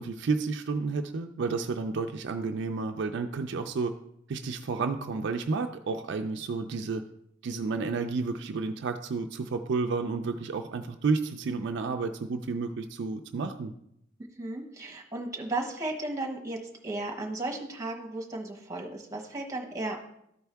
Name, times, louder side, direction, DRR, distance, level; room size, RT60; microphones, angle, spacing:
voice 1, 0.0-3.9 4.3-7.1 7.4-13.7, right 4 dB, 60° right, 5 dB, 0.4 m, -31 dB
voice 2, 14.4-16.6 16.8-20.0, right 2 dB, 15° right, 1 dB, 1.1 m, -34 dB
13.0 x 4.5 x 3.4 m, 0.77 s
head